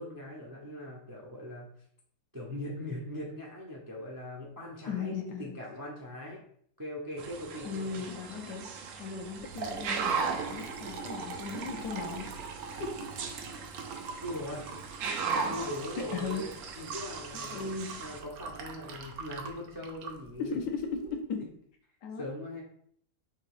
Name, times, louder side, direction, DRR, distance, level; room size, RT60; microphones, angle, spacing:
voice 1, 0.0-1.7 2.3-5.1 5.4-6.4 6.8-8.1 14.2-14.6 15.3-17.6 18.0-20.6 22.2-22.6, left 1 dB, 25° right, -2 dB, 0.4 m, -40 dB
voice 2, 4.9-5.5 7.6-12.3 12.8-12.9 16.1-16.5 17.4-17.9 20.4-21.5 22.0-22.3, left 5 dB, 80° left, 2 dB, 1.4 m, -37 dB
sound 1, 7.2-18.2, right 5 dB, 65° right, 0.8 m, -38 dB
Liquid, 9.2-21.1, right 4 dB, 85° right, 1.3 m, -42 dB
3.7 x 3.0 x 4.7 m, 0.63 s
omnidirectional pair, 1.8 m